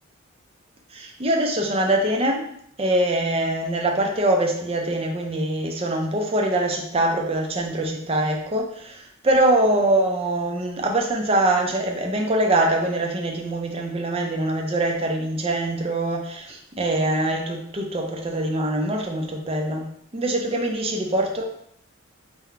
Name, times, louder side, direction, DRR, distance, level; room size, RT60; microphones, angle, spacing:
voice 1, 0.9-2.5 2.8-21.4, right 1 dB, 25° right, 1 dB, 0.5 m, -23 dB
3.9 x 2.2 x 4.3 m, 0.69 s
head